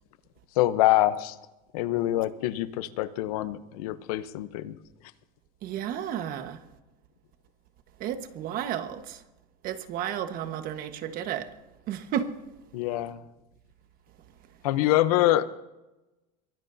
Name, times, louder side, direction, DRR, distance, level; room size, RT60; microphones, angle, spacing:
voice 1, 0.6-1.4 1.7-4.8 12.7-13.2 14.6-15.5, left 15 dB, 90° left, 0.8 m, -25 dB
voice 2, 5.6-6.6 8.0-9.2 9.6-11.5 11.9-12.3, right 9 dB, 50° right, 1.4 m, -32 dB
22.5 x 16.0 x 2.7 m
supercardioid pair, 130°, 18 cm